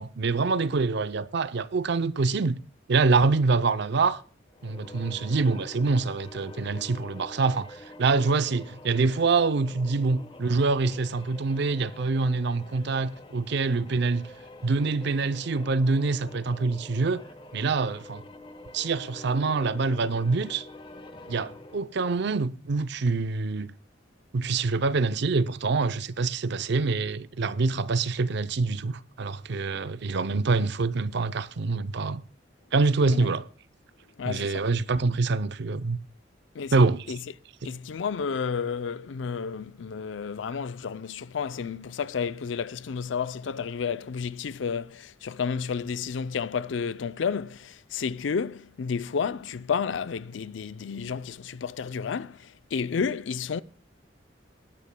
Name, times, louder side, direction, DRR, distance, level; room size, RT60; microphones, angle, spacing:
voice 1, 0.0-2.6 2.9-4.2 4.6-14.3 14.6-17.2 17.5-18.2 18.7-20.7 21.3-23.7 24.3-32.2 32.7-33.5 34.2-36.0 36.7-37.2 37.6-37.7, right 3 dB, 65° right, 0.6 m, -25 dB
sound 1, 4.5-22.0, left 2 dB, 25° left, 1.1 m, -46 dB
voice 2, 34.2-34.7 36.6-36.7 37.1-37.2 37.6-53.6, left 6 dB, 70° left, 0.4 m, -31 dB
19.0 x 10.5 x 2.2 m
head